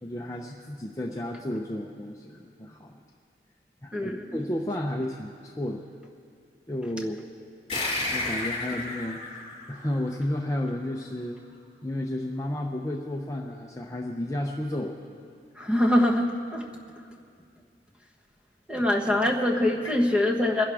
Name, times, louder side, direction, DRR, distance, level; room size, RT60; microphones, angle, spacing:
voice 1, 0.0-3.0 3.8-5.9 6.7-7.2 8.1-9.2 9.7-11.4 11.8-15.3 18.8-18.9, left 1 dB, 20° left, 0 dB, 0.6 m, -32 dB
voice 2, 3.9-4.4 15.5-16.6 18.7-20.6, left 1 dB, 5° right, 0 dB, 1.2 m, -24 dB
sound 1, 7.7-10.7, left 2 dB, 35° left, 4.3 m, -32 dB
25.0 x 11.0 x 3.5 m, 2.3 s
head